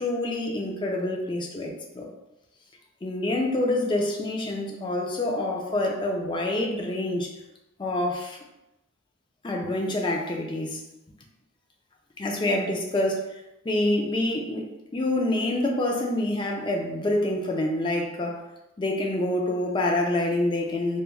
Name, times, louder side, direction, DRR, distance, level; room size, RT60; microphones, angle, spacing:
voice 1, 0.0-2.1 3.0-7.3 7.8-8.4 9.4-10.8 12.2-13.2 13.6-14.6 14.9-18.4 18.8-21.0, left 1 dB, 25° left, 1 dB, 0.3 m, -26 dB
3.2 x 2.2 x 2.3 m, 0.91 s
head